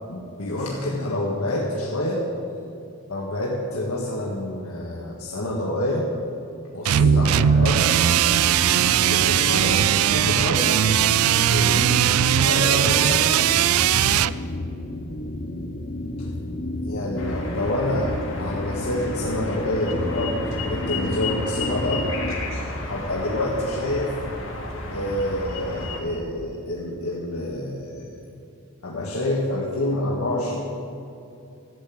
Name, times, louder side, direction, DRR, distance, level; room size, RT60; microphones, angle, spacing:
voice 1, 0.1-2.2 3.1-6.1 6.7-7.9 8.9-10.7 11.4-11.9 12.4-13.3 16.2-16.3 16.8-22.1 22.8-24.1 24.9-28.1 28.8-30.7, left 1 dB, 85° left, -4 dB, 1.7 m, -27 dB
sound 1, 6.9-14.3, right 10 dB, 80° right, 0.3 m, -19 dB
sound 2, 7.0-22.4, left 1 dB, 40° left, 0.8 m, -32 dB
sound 3, 17.2-26.0, left 2 dB, 60° left, 2.2 m, -32 dB
13.0 x 8.0 x 8.6 m, 2.7 s
head